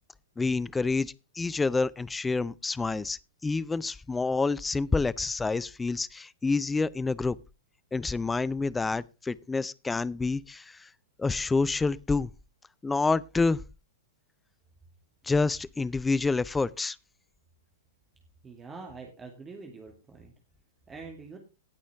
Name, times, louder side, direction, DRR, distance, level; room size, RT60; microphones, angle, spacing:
voice 1, 0.4-7.4 7.9-10.9 11.2-12.3 12.8-13.6 15.2-17.0, left 3 dB, 10° left, 0.5 m, -28 dB
voice 2, 18.4-20.3 20.9-21.4, right 4 dB, 15° right, 2.2 m, -44 dB
18.5 x 6.3 x 3.5 m
figure-of-eight pair, 105°, 0 cm